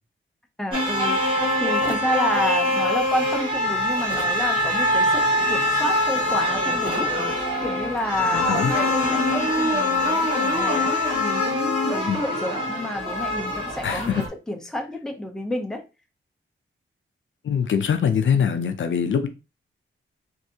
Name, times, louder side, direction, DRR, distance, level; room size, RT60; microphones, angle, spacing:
voice 1, 0.6-7.1 7.6-15.8, equal, 5° left, 0.5 m, -30 dB
sound 1, 0.7-14.3, left 1 dB, 25° right, 1.4 m, -23 dB
sound 2, 1.8-2.1 4.1-4.4 6.8-7.1, right 4 dB, 70° right, 0.7 m, -36 dB
voice 2, 8.2-8.7 12.1-12.2 13.8-14.2 17.4-19.3, left 7 dB, 65° left, 0.5 m, -23 dB
3.2 x 2.6 x 2.7 m
wide cardioid pair, 125°, 21 cm